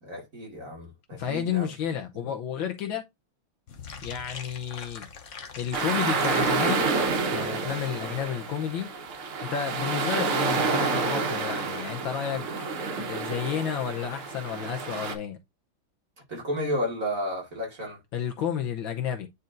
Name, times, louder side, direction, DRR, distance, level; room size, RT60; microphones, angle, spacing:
voice 1, 0.0-1.7 2.3-2.4 16.3-18.0, equal, 40° right, 2.5 m, -32 dB
voice 2, 1.1-3.1 4.0-5.1 5.6-6.9 7.3-8.9 9.4-12.5 13.0-15.4 18.1-19.3, left 8 dB, 70° left, 1.5 m, -31 dB
sound 1, 3.7-8.3 8.5-8.6 8.9-9.1 9.4-9.5, left 5 dB, 55° left, 0.9 m, -43 dB
sound 2, 5.7-15.2, right 4 dB, 90° right, 2.1 m, -29 dB
9.5 x 4.2 x 2.6 m
omnidirectional pair, 2.3 m